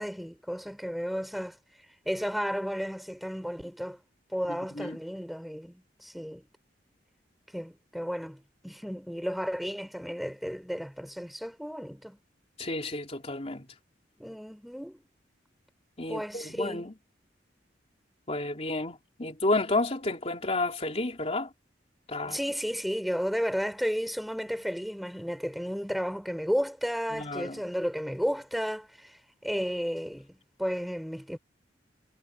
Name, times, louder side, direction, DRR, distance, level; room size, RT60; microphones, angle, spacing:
voice 1, 0.0-1.6 2.0-4.0 4.3-6.5 7.5-12.2 14.2-15.0 16.1-16.9 22.3-31.4, equal, ahead, 4.5 m, -33 dB
voice 2, 4.5-5.0 12.6-13.6 16.0-16.9 18.3-21.5 22.1-22.4 27.1-27.6, left 2 dB, 35° left, 3.2 m, -31 dB
head